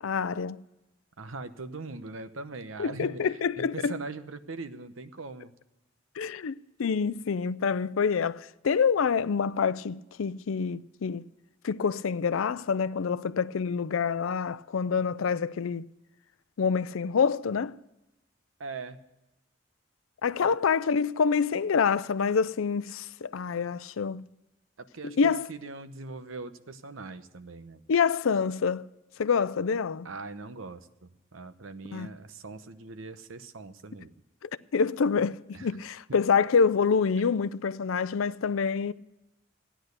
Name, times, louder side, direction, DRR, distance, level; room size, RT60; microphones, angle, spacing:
voice 1, 0.0-0.6 2.8-3.9 6.2-6.5 6.8-11.2 11.6-15.9 16.6-17.7 20.2-24.2 25.0-25.5 27.9-28.9 29.2-30.1 31.9-32.1 34.4-38.9, left 6 dB, 85° left, 0.5 m, -27 dB
voice 2, 1.2-5.5 18.6-19.0 20.4-20.5 24.8-27.8 30.0-34.1 35.5-35.8, right 3 dB, 85° right, 0.9 m, -41 dB
14.5 x 10.0 x 6.6 m
head